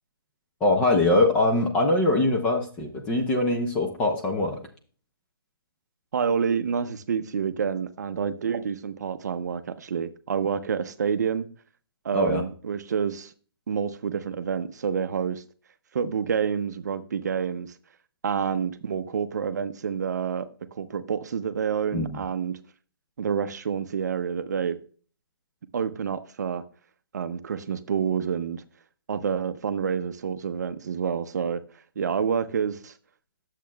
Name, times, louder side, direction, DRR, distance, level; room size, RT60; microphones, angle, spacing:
voice 1, 0.6-4.6 12.1-12.4 21.9-22.2, left 2 dB, 10° left, 0.5 m, -23 dB
voice 2, 6.1-11.5 12.0-13.3 13.7-15.4 15.9-17.7 18.2-22.6 23.2-24.8 25.7-26.6 27.1-28.6 29.1-31.6 32.0-32.9, right 7 dB, 45° right, 0.6 m, -28 dB
10.5 x 7.4 x 2.2 m
hypercardioid pair, 170°, 13 cm